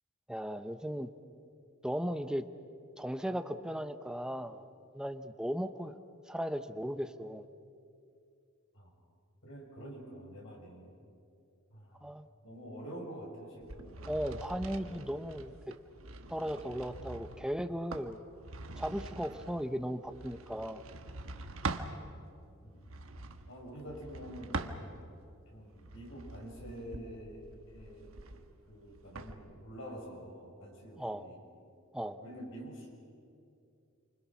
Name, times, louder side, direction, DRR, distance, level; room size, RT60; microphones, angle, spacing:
voice 1, 0.3-1.1 1.8-2.5 3.0-4.7 4.9-5.9 6.3-7.5 12.0-12.3 14.0-15.5 16.3-18.2 18.8-20.8 31.0-31.3 31.9-32.2, equal, 5° right, 9 dB, 0.7 m, -36 dB
voice 2, 9.4-10.9 11.7-12.1 12.4-14.0 14.5-15.0 22.6-23.0 23.5-24.8 25.5-28.2 28.7-31.4 32.2-32.9, equal, 65° left, -1 dB, 6.6 m, -47 dB
sound 1, 13.6-22.0 22.8-25.2 25.7-29.3, right 3 dB, 70° right, 1.3 m, -44 dB
28.5 x 25.5 x 6.0 m, 2.5 s
head